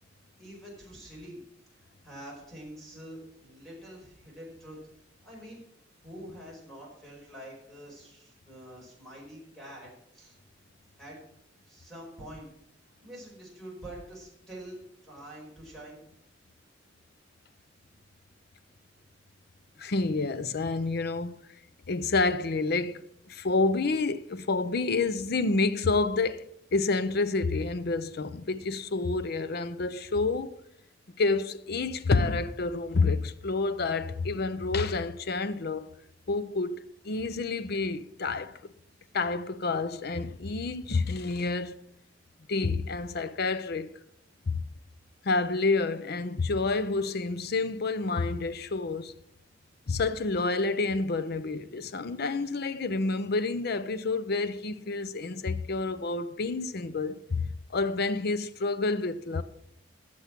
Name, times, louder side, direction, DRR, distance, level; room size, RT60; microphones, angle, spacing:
voice 1, 0.4-1.4 2.0-4.8 5.2-5.6 6.0-10.4 11.0-11.2 11.7-12.5 13.0-16.0, right 1 dB, ahead, 4.9 m, -46 dB
voice 2, 19.8-21.4 21.9-26.4 26.7-30.5 31.2-35.9 36.3-36.8 37.0-38.6 39.1-41.8 42.5-44.0 44.5-44.6 45.2-49.1 49.9-59.4, left 3 dB, 60° left, 0.7 m, -29 dB
12.5 x 7.6 x 6.0 m
head